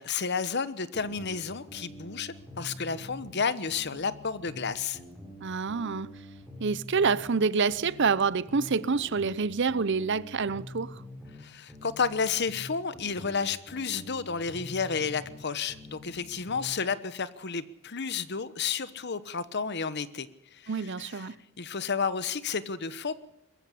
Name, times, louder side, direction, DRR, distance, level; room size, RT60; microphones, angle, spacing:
voice 1, 0.0-5.0 11.4-21.2 21.6-23.3, left 5 dB, 55° left, 1.1 m, -31 dB
sound 1, 0.9-3.4 3.7-7.4 7.7-11.4 11.7-15.4 15.7-16.8, left 1 dB, 5° left, 5.3 m, -46 dB
voice 2, 5.4-6.1 6.6-11.0 20.7-21.3, right 5 dB, 60° right, 0.7 m, -27 dB
22.0 x 14.5 x 8.5 m
head